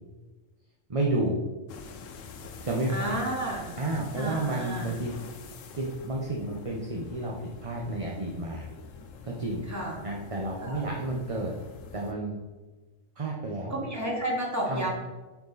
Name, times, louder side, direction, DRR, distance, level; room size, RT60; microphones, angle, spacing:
voice 1, 0.9-1.4 2.6-3.2 3.8-5.1 5.8-8.7 9.2-9.6 10.0-11.5 11.9-12.4 13.2-13.8 14.7-14.9, right 2 dB, 30° right, -2 dB, 1.0 m, -31 dB
sound 1, 1.7-12.1, left 5 dB, 75° left, 1.1 m, -46 dB
voice 2, 2.9-3.8 4.1-4.9 9.7-10.0 10.6-10.9 13.7-14.9, right 1 dB, 15° right, -3 dB, 2.3 m, -32 dB
9.1 x 7.4 x 4.1 m, 1.2 s
omnidirectional pair, 1.3 m